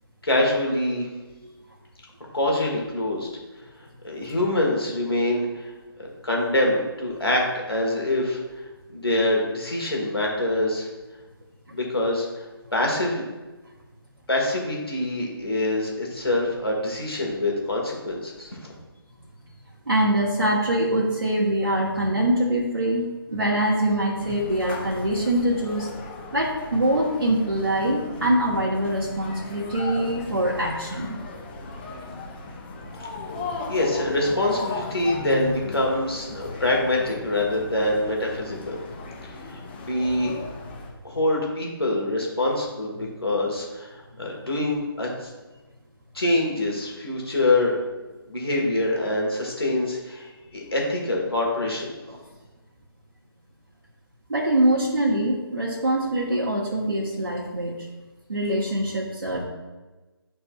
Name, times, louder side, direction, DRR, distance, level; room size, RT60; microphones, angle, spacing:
voice 1, 0.2-1.1 2.3-3.3 4.0-5.7 6.0-8.4 8.9-10.9 11.7-12.3 12.7-13.2 14.3-18.7 33.7-38.8 39.5-40.3 41.0-45.3 46.1-47.7 48.3-51.9, left 1 dB, 70° left, -1 dB, 1.7 m, -25 dB
voice 2, 19.9-25.9 26.3-31.2 52.1-52.2 54.3-57.8 58.3-59.4, right 1 dB, 70° right, -6 dB, 1.2 m, -24 dB
sound 1, 24.2-40.9, left 3 dB, 25° left, 0.7 m, -37 dB
10.5 x 4.2 x 2.4 m, 1.2 s
figure-of-eight pair, 145°, 13 cm